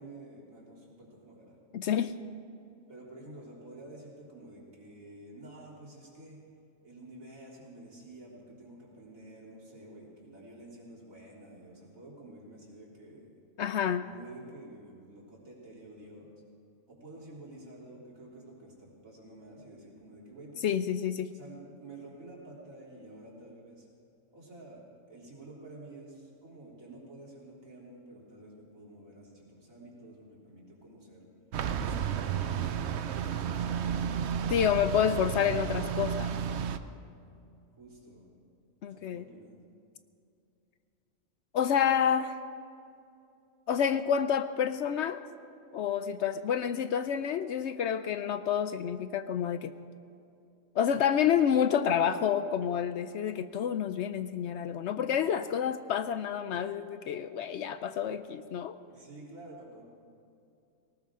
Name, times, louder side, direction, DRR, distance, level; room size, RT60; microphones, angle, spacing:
voice 1, 0.0-1.6 2.9-6.4 6.8-13.3 14.0-16.4 16.9-20.7 21.3-23.9 24.3-31.3 31.7-34.7 37.8-38.4 38.9-39.5 58.9-59.8, right 2 dB, 80° right, -4 dB, 3.8 m, -50 dB
voice 2, 1.7-2.1 13.6-14.0 20.6-21.3 34.5-36.4 38.8-39.2 41.5-42.4 43.7-45.2 45.7-49.7 50.8-58.8, left 8 dB, 65° left, 11 dB, 0.8 m, -29 dB
sound 1, 31.5-36.8, right 8 dB, 60° right, 0.8 m, -32 dB
19.0 x 18.5 x 3.7 m, 2.6 s
omnidirectional pair, 1.4 m